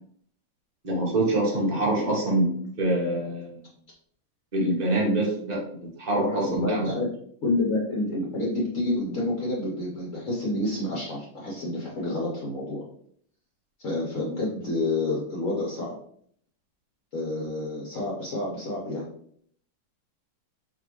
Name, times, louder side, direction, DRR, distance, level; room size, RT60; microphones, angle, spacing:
voice 1, 0.8-3.6 4.5-6.9, right 1 dB, 85° right, -3 dB, 0.3 m, -25 dB
voice 2, 1.5-2.0 6.2-7.1 7.4-12.8 13.8-16.0 17.1-19.1, left 2 dB, 50° left, -4 dB, 1.0 m, -29 dB
4.7 x 2.8 x 3.0 m, 0.62 s
omnidirectional pair, 2.4 m